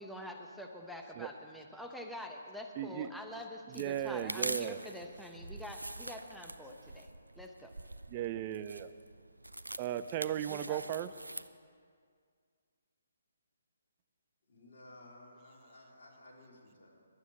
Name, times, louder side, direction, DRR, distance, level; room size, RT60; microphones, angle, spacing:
voice 1, 0.0-7.1 7.4-7.7 10.7-10.8, left 1 dB, ahead, 2 dB, 0.9 m, -46 dB
voice 2, 2.8-3.1 3.7-4.8 8.1-8.9 9.8-11.1, right 11 dB, 30° right, 13 dB, 0.5 m, -36 dB
sound 1, 3.7-11.5, right 1 dB, 90° right, 0.5 m, -44 dB
voice 3, 14.4-17.1, left 1 dB, 60° left, -3 dB, 3.4 m, -56 dB
11.5 x 8.1 x 8.6 m, 2.1 s
figure-of-eight pair, 140°, 0 cm